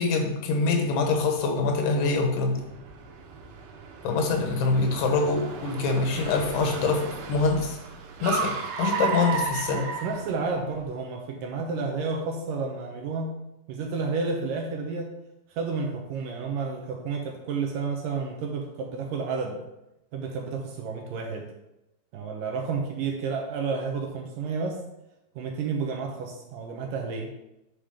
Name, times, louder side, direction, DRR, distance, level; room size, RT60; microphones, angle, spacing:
voice 1, 0.0-2.7 4.0-7.8 8.2-9.9, left 4 dB, 90° left, 3 dB, 3.3 m, -25 dB
Car, 1.0-10.8, right 5 dB, 90° right, 3.3 m, -34 dB
voice 2, 9.7-13.4 13.7-15.1 15.5-19.6 20.1-21.5 22.1-24.8 25.4-27.3, right 4 dB, 70° right, 2 dB, 2.3 m, -31 dB
9.3 x 5.2 x 5.0 m, 0.90 s
omnidirectional pair, 4.6 m